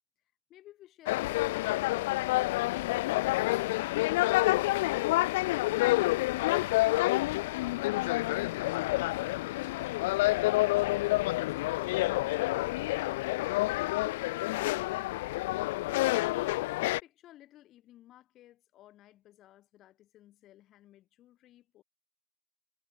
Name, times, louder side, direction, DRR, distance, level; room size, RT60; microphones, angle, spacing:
sound 1, 1.1-17.0, left 19 dB, 50° left, 0.8 m, -28 dB
voice 1, 15.9-21.8, left 14 dB, 30° left, 5.4 m, -57 dB
figure-of-eight pair, 95°, 0 cm